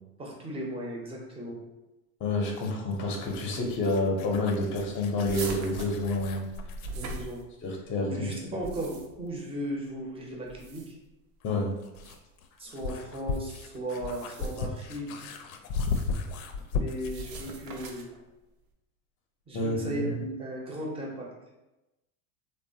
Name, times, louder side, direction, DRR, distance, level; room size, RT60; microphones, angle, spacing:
voice 1, 0.2-1.6 6.9-7.4 8.1-10.9 12.6-15.3 16.7-18.1 19.5-21.3, equal, 15° right, -1 dB, 0.6 m, -36 dB
voice 2, 2.2-6.5 7.6-8.6 11.4-11.7 19.5-20.2, left 2 dB, 30° left, 1 dB, 0.6 m, -29 dB
sound 1, 2.4-7.0 9.3-9.4 11.4-17.2, left 4 dB, 70° left, 0.5 m, -36 dB
sound 2, 5.3-7.9 8.4-9.3 10.4-11.1 11.9-12.2 14.0-14.7 15.7-16.2 17.0-18.2, right 3 dB, 80° right, 0.6 m, -41 dB
3.0 x 2.1 x 2.7 m, 1.0 s
hypercardioid pair, 100°, 44 cm